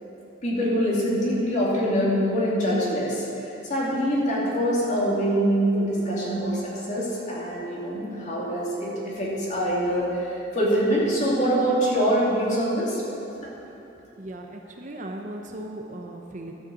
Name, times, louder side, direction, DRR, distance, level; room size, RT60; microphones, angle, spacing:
voice 1, 0.4-3.2 3.7-13.0, equal, 40° left, -5 dB, 2.7 m, -24 dB
voice 2, 14.1-16.5, right 1 dB, 40° right, 3 dB, 0.8 m, -37 dB
12.5 x 6.6 x 7.2 m, 2.9 s
head